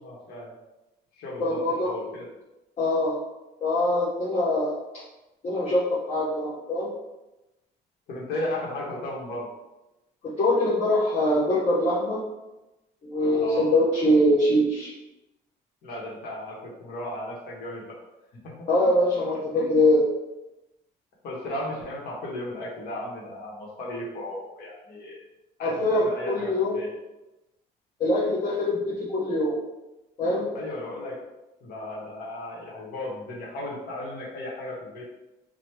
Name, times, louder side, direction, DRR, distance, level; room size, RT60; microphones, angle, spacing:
voice 1, 0.0-0.5 1.2-2.3 8.1-9.5 13.3-13.8 15.8-18.0 18.4-18.5 19.5-19.8 21.2-25.2 25.6-26.9 30.5-31.2 31.6-35.1, left 1 dB, 70° left, -4 dB, 0.9 m, -35 dB
voice 2, 1.4-1.9 2.8-3.2 3.6-4.8 5.4-6.9 10.2-12.2 13.0-14.9 18.7-20.0 25.6-26.7 28.0-29.6 30.2-30.5, left 1 dB, 40° left, -8 dB, 0.7 m, -23 dB
2.9 x 2.0 x 3.2 m, 0.98 s
cardioid pair, 110°, 17 cm